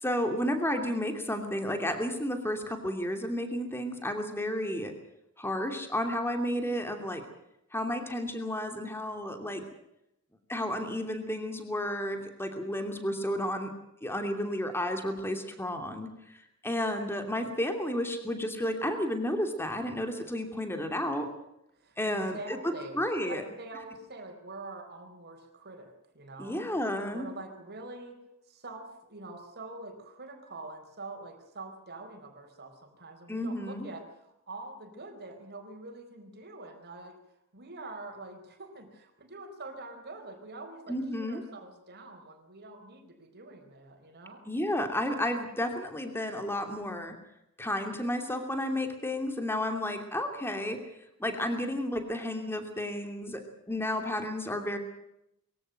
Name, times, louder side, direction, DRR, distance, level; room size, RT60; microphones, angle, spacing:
voice 1, 0.0-4.9 5.4-7.2 7.7-9.6 10.5-13.7 14.0-16.1 16.6-21.3 22.0-23.4 26.4-27.3 33.3-33.9 40.9-41.4 44.5-47.1 47.6-50.8 51.2-53.4 53.7-54.8, left 1 dB, 10° left, 5 dB, 2.8 m, -32 dB
voice 2, 21.7-26.7 27.1-28.2 28.5-37.2 37.5-44.4, right 2 dB, 50° right, 5 dB, 4.3 m, -45 dB
23.0 x 16.0 x 7.7 m, 0.81 s
head